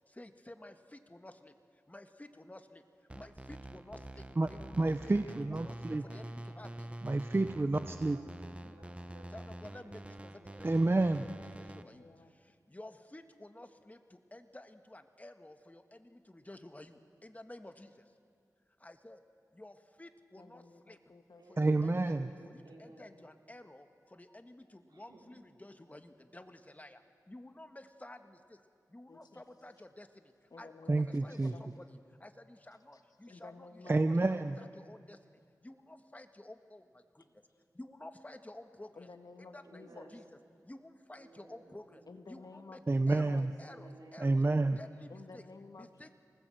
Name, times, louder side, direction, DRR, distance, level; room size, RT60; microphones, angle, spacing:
voice 1, 0.1-2.8 3.1-5.1 5.5-6.9 9.3-11.0 11.2-11.3 11.6-18.2 18.8-19.2 19.5-21.0 21.5-22.2 22.5-28.6 28.9-37.5 37.7-39.1 39.5-40.2 40.6-42.8 43.1-44.4 44.8-45.4 45.7-46.1, left 1 dB, 25° left, 7 dB, 1.6 m, -52 dB
sound 1, 3.1-11.8, right 1 dB, 20° right, 1.1 m, -46 dB
voice 2, 3.9-4.4 4.9-5.0 6.0-7.0 11.6-12.3 20.4-21.4 29.1-29.4 30.5-31.6 33.3-34.3 39.0-40.1 42.1-43.5 45.1-46.1, left 3 dB, 70° left, 7 dB, 1.7 m, -54 dB
voice 3, 4.8-6.1 7.0-8.2 10.6-11.3 21.6-22.3 30.9-31.6 33.9-34.6 42.9-43.5 44.2-44.8, right 2 dB, 35° right, 9 dB, 0.8 m, -29 dB
voice 4, 8.0-9.3 9.8-11.8 21.4-23.1 24.9-25.2 30.9-31.5 33.8-34.5 39.6-40.3 41.2-42.2 43.6-44.8, right 2 dB, 85° right, -3 dB, 4.9 m, -57 dB
26.0 x 19.5 x 7.8 m, 2.2 s
cardioid pair, 45°, 7 cm